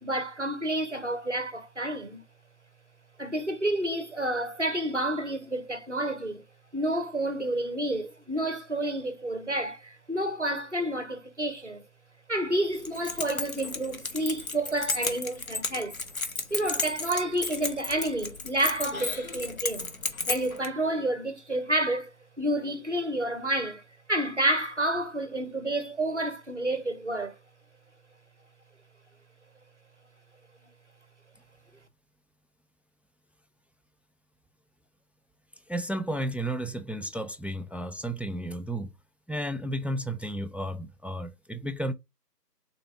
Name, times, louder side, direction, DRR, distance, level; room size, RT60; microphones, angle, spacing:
voice 1, 0.0-2.2 3.2-6.4 6.7-11.8 12.3-16.0 16.5-19.9 20.3-22.1 22.4-23.8 24.1-27.4, right 1 dB, 45° right, 0.7 m, -29 dB
Keys jangling, 12.7-20.7, left 3 dB, 55° left, 0.8 m, -34 dB
voice 2, 35.7-38.9 39.3-41.9, right 1 dB, 5° right, 0.4 m, -33 dB
3.8 x 3.2 x 3.1 m
figure-of-eight pair, 180°, 50 cm